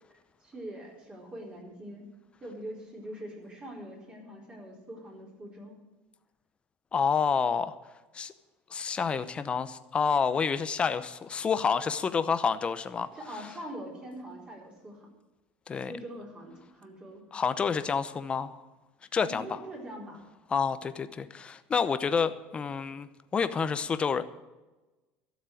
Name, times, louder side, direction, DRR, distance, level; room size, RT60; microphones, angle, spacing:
voice 1, 0.4-2.1 2.4-5.8 13.1-15.1 15.9-17.2 19.2-20.2, right 1 dB, 20° right, -2 dB, 4.4 m, -43 dB
voice 2, 6.9-7.7 8.1-8.3 8.7-13.1 15.7-15.9 17.3-18.5 19.1-19.6 20.5-24.2, left 6 dB, 25° left, 12 dB, 0.8 m, -28 dB
12.5 x 7.3 x 10.0 m, 1.1 s
cardioid pair, 135°, 5 cm